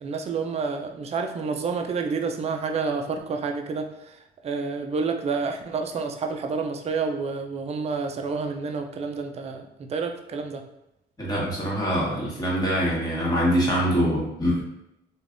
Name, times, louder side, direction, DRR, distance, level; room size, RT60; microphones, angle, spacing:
voice 1, 0.0-10.6, right 4 dB, 35° right, 4 dB, 0.4 m, -29 dB
voice 2, 11.2-14.6, equal, 20° left, -6 dB, 1.3 m, -24 dB
3.2 x 2.3 x 2.5 m, 0.84 s
cardioid pair, 90°, 20 cm